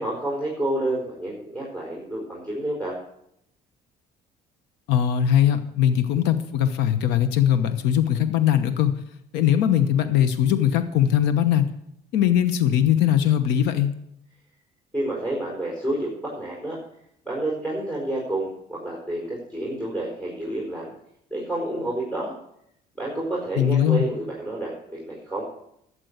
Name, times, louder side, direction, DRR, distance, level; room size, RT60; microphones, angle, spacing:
voice 1, 0.0-3.0 14.9-16.8 17.2-20.9 21.3-22.4 22.9-25.4, right 1 dB, 5° left, -5 dB, 4.6 m, -29 dB
voice 2, 4.9-8.9 9.3-11.7 12.1-13.9 23.6-24.0, left 10 dB, 90° left, 10 dB, 1.0 m, -20 dB
12.0 x 7.8 x 8.1 m, 0.76 s
cardioid pair, 110°, 17 cm